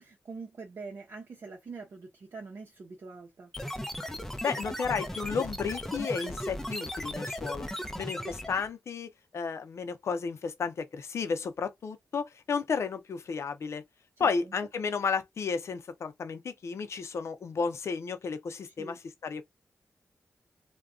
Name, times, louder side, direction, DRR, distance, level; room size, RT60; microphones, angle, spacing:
voice 1, 0.0-3.5 14.2-14.5 18.6-19.0, right 4 dB, 60° right, 0.7 m, -44 dB
sound 1, 3.5-8.7, equal, 5° left, 0.5 m, -36 dB
voice 2, 4.4-7.7 8.0-13.8 14.2-19.4, left 5 dB, 70° left, 0.6 m, -33 dB
2.3 x 2.2 x 3.6 m
cardioid pair, 65°, 5 cm